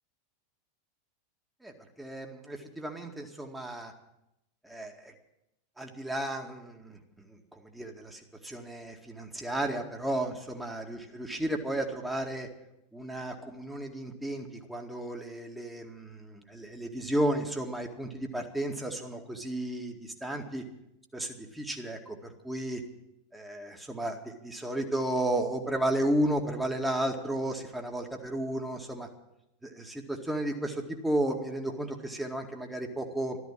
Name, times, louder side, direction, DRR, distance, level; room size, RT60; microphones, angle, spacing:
voice 1, 1.6-3.9 4.6-5.1 5.8-12.5 12.9-20.6 21.1-22.8 23.3-29.1 29.6-33.4, right 1 dB, 5° right, 3 dB, 2.1 m, -33 dB
13.5 x 13.0 x 7.4 m, 0.86 s
figure-of-eight pair, 85°, 0 cm